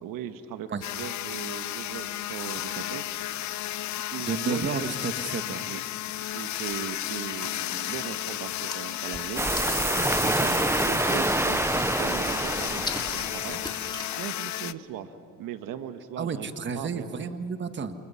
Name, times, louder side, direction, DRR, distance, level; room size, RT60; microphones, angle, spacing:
voice 1, 0.0-3.1 3.9-4.9 5.6-5.8 6.1-9.4 10.2-11.7 12.0-13.6 14.1-15.1 15.4-16.5 16.7-17.2, right 9 dB, 75° right, 9 dB, 1.4 m, -38 dB
sound 1, 0.8-14.7, left 14 dB, 60° left, 0.7 m, -33 dB
voice 2, 4.3-5.6 10.2-10.5 16.2-17.9, right 5 dB, 35° right, 8 dB, 1.6 m, -31 dB
sound 2, 6.7-11.5 11.8-14.6, left 2 dB, 15° left, 3.4 m, -42 dB
sound 3, 9.4-13.8, right 2 dB, 10° right, 0.6 m, -27 dB
29.0 x 28.5 x 5.8 m, 2.4 s
cardioid pair, 100°, 33 cm